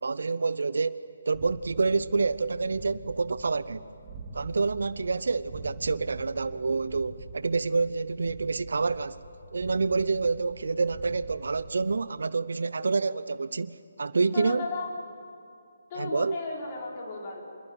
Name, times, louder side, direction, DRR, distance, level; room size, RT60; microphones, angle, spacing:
voice 1, 0.0-3.8 4.3-9.2 9.5-14.7 15.9-16.4, right 4 dB, 60° right, 0.7 m, -28 dB
sound 1, 1.3-12.0, right 3 dB, 20° right, 2.9 m, -45 dB
voice 2, 14.3-14.9 15.9-17.4, left 3 dB, 30° left, 5.8 m, -35 dB
26.5 x 21.0 x 9.3 m
figure-of-eight pair, 145°, 0 cm